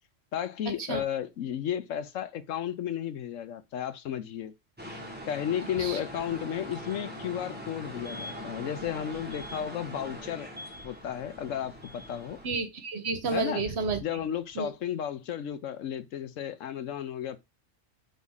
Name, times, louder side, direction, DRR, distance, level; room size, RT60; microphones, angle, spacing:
voice 1, 0.3-4.5 5.3-10.5 10.8-12.4 13.3-13.6 14.0-17.4, left 9 dB, 85° left, 1.1 m, -33 dB
sound 1, 4.8-12.5, equal, 10° right, 1.4 m, -42 dB
voice 2, 12.4-14.0 14.6-14.7, right 4 dB, 60° right, 1.2 m, -30 dB
4.8 x 4.1 x 5.5 m
omnidirectional pair, 1.3 m